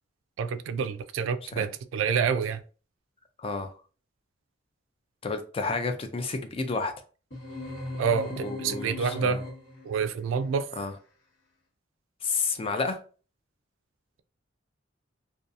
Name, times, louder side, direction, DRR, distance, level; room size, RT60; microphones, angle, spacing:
voice 1, 0.4-2.6 8.0-9.4 9.8-10.7, right 6 dB, 90° right, 0.3 m, -28 dB
voice 2, 3.4-3.7 5.2-6.9 8.4-9.4 10.8-10.9 12.2-13.0, left 4 dB, 30° left, 0.4 m, -30 dB
sound 1, 7.3-9.9, left 1 dB, 70° left, 1.2 m, -38 dB
2.7 x 2.3 x 2.3 m
head